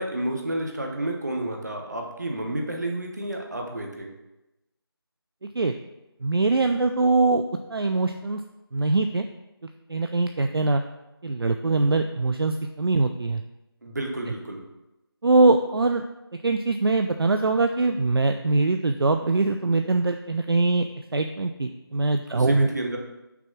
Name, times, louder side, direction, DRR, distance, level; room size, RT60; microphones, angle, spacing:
voice 1, 0.0-4.1 13.8-14.6 22.3-23.0, right 1 dB, 45° right, 2 dB, 1.0 m, -30 dB
voice 2, 6.2-7.4 7.7-8.4 8.7-9.3 9.9-10.8 11.2-13.4 15.2-16.0 16.4-20.9 21.1-22.7, right 3 dB, 65° right, 6 dB, 0.4 m, -22 dB
5.9 x 3.5 x 5.9 m, 0.97 s
figure-of-eight pair, 180°, 13 cm